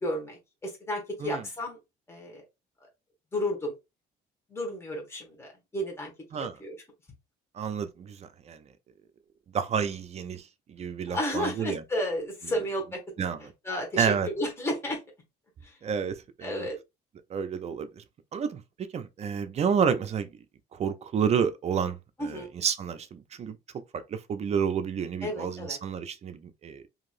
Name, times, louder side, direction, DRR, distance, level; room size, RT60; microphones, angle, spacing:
voice 1, 0.0-1.8 2.1-2.4 3.3-3.7 4.5-6.1 6.6-6.7 11.1-13.0 13.6-15.0 15.6-15.7 16.4-16.8 22.2-22.5 25.2-25.8, left 1 dB, 15° left, 1.2 m, -32 dB
voice 2, 7.5-8.6 9.5-11.8 13.2-13.4 14.0-14.3 15.8-16.7 17.3-18.0 18.3-18.6 18.9-20.3 20.7-23.6 23.9-26.8, right 7 dB, 40° right, 0.4 m, -30 dB
3.0 x 2.6 x 2.4 m
cardioid pair, 110°, 17 cm